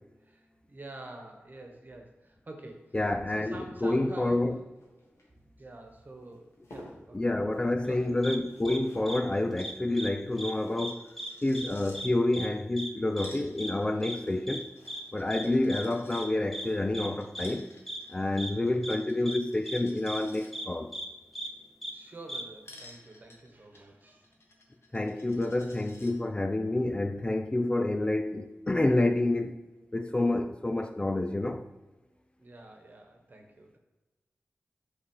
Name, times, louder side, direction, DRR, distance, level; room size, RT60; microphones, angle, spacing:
voice 1, 0.2-3.0 3.3-4.6 5.6-7.2 7.8-8.1 21.9-24.3 32.4-33.8, right 2 dB, 45° right, 1.3 m, -47 dB
voice 2, 2.9-4.6 7.1-11.1 11.4-14.7 15.1-17.7 18.1-20.9 24.9-29.6 29.9-31.6, left 2 dB, 25° left, 0.4 m, -28 dB
sound 1, 4.0-12.7 13.8-17.7 19.3-19.6 19.9-20.0, left 1 dB, 85° left, 1.5 m, -56 dB
sound 2, 8.2-8.4 8.6-8.8 9.1-9.2 9.6-10.1 10.4-10.5 10.8-11.3 11.5-11.7 11.9-12.1 12.3-12.5 12.8-12.9 13.2-13.3 13.6-13.7 14.0-14.2 14.5-14.6 14.9-15.0 15.3-15.4 15.7-15.8 16.1-16.2 16.5-16.7 16.9-17.1 17.3-17.5 17.9-18.0 18.4-18.5 18.8-19.0 19.3-19.4 19.7-19.8 20.1-20.2 20.5-20.7 20.9-21.1 21.3-21.5 21.8-21.9 22.3-22.4, right 1 dB, ahead, 0.9 m, -37 dB
Coin (dropping), 9.6-9.7 10.0-10.1 10.3-12.0 12.9-16.2 17.2-20.5 22.6-26.1, left 1 dB, 70° left, 1.1 m, -55 dB
5.6 x 4.1 x 5.4 m
wide cardioid pair, 75°, 4 cm